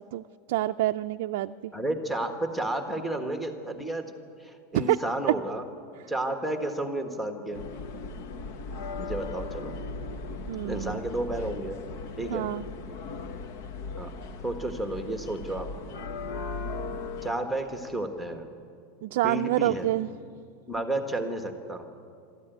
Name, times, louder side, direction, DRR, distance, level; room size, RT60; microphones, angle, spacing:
voice 1, 0.5-1.7 4.7-5.0 10.5-11.0 12.3-12.6 19.0-20.1, right 15 dB, 65° right, 6 dB, 0.4 m, -27 dB
voice 2, 1.7-4.1 4.4-5.6 6.1-7.6 9.0-9.7 10.6-11.8 12.2-12.5 14.0-14.1 14.4-15.7 17.2-18.4 19.2-19.9 20.7-21.9, right 1 dB, ahead, 4 dB, 1.5 m, -31 dB
sound 1, 7.5-17.3, left 3 dB, 55° left, 1.2 m, -38 dB
24.5 x 13.5 x 9.2 m, 2.3 s
supercardioid pair, 165°, 0 cm